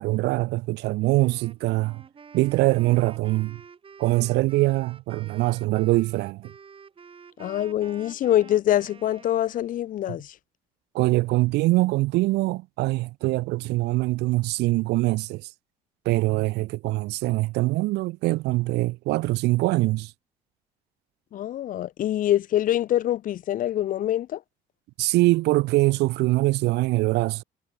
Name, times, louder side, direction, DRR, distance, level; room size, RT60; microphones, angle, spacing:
voice 1, 0.0-2.0 2.3-3.6 4.0-6.5 10.1-10.2 10.9-15.5 16.0-20.1 25.0-27.4, right 20 dB, 80° right, 0.6 m, -23 dB
Wind instrument woodwind instrument, 1.0-9.8, right 6 dB, 30° right, 2.7 m, -49 dB
voice 2, 7.4-10.3 21.3-24.4, left 12 dB, 55° left, 0.6 m, -24 dB
cardioid pair, 110°, 17 cm